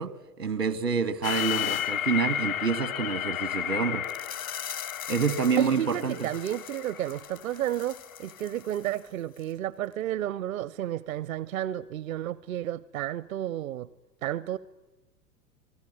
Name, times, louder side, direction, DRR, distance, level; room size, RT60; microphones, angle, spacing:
voice 1, 0.0-4.1 5.1-6.3, right 6 dB, 80° right, 1.8 m, -28 dB
sound 1, 1.2-8.2, left 11 dB, 60° left, 0.8 m, -33 dB
sound 2, 4.0-9.1 9.4-9.5 9.9-10.0, left 8 dB, 80° left, 1.8 m, -43 dB
voice 2, 5.6-13.9 14.2-14.6, right 12 dB, 60° right, 0.7 m, -32 dB
28.0 x 19.0 x 8.8 m
figure-of-eight pair, 100°, 47 cm